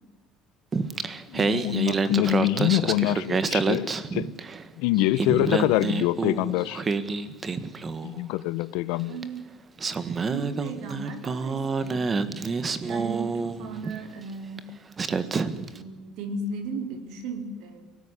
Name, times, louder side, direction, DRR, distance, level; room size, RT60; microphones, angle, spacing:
Singing, 0.7-4.7 5.0-8.2 9.2-9.3 9.8-14.0 14.6-14.7 15.0-15.8, right 4 dB, 20° right, 1.4 m, -28 dB
voice 1, 1.3-4.3 4.8-6.8 8.0-9.2, left 16 dB, 80° left, 0.9 m, -25 dB
voice 2, 9.0-9.4 10.2-12.0 12.8-14.7 15.7-17.8, right 3 dB, 65° right, 4.6 m, -36 dB
29.5 x 18.5 x 9.8 m
cardioid pair, 160°, 0 cm